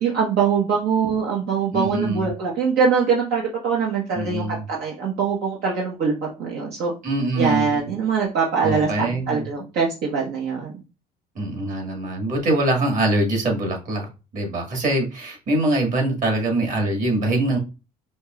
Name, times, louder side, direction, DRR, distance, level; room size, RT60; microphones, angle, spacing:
voice 1, 0.0-6.9 7.4-10.8, right 5 dB, 80° right, -2 dB, 1.2 m, -23 dB
voice 2, 1.7-2.3 4.1-4.6 7.0-7.9 8.6-9.4 11.4-14.1 14.3-17.6, right 2 dB, 50° right, 2 dB, 1.8 m, -23 dB
5.1 x 3.0 x 2.4 m, 0.30 s
cardioid pair, 110°, 17 cm